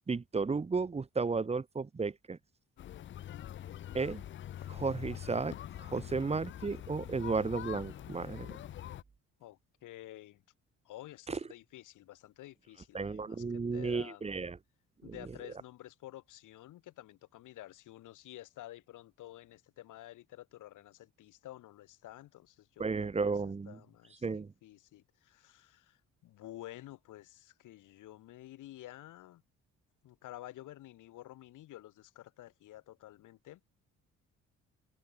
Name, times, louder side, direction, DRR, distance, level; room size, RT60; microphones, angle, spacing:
voice 1, 0.1-2.4 3.9-4.2 4.7-8.6 11.3-11.4 12.9-14.6 15.0-15.1 22.8-23.8 24.2-24.5, right 4 dB, 20° right, 0.8 m, -34 dB
sound 1, 2.8-9.0, left 11 dB, 40° left, 0.4 m, -44 dB
voice 2, 9.4-10.4 10.9-14.3 15.0-23.3 23.7-29.4 30.0-33.6, left 15 dB, 85° left, 3.4 m, -51 dB
cardioid pair, 90°, 30 cm